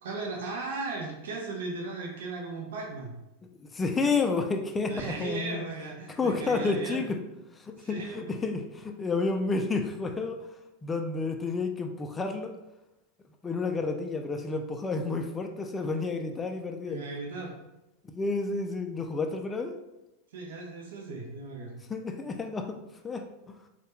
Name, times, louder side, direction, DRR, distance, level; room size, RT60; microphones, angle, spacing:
voice 1, 0.0-3.1 4.9-7.1 7.8-8.3 16.9-17.5 20.3-21.8, right 3 dB, 75° right, -1 dB, 0.6 m, -37 dB
voice 2, 3.6-5.6 6.2-7.2 7.5-10.5 10.8-12.5 13.4-17.1 18.0-19.8 21.9-23.6, left 3 dB, 20° left, 5 dB, 0.3 m, -30 dB
2.3 x 2.1 x 2.9 m, 0.95 s
hypercardioid pair, 100°, 0 cm